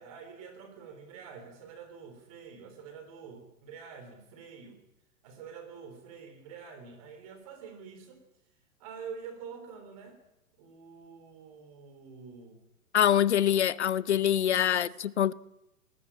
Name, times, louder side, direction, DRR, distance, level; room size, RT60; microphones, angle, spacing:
voice 1, 0.0-4.8 5.2-8.2 8.8-10.2 10.6-12.6 14.6-15.0, right 6 dB, 25° right, 3.6 m, -47 dB
voice 2, 12.9-15.3, left 10 dB, 50° left, 0.7 m, -25 dB
20.0 x 17.5 x 8.7 m
hypercardioid pair, 175°, 44 cm